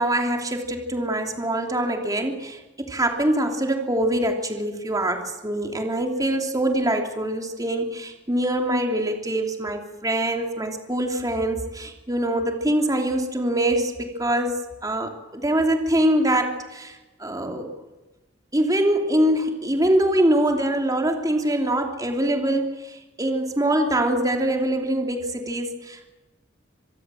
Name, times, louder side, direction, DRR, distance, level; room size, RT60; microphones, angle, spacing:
voice 1, 0.0-16.9 17.2-17.7 18.5-26.1, right 1 dB, 20° right, 3 dB, 3.0 m, -24 dB
26.0 x 22.0 x 7.7 m, 1.1 s
head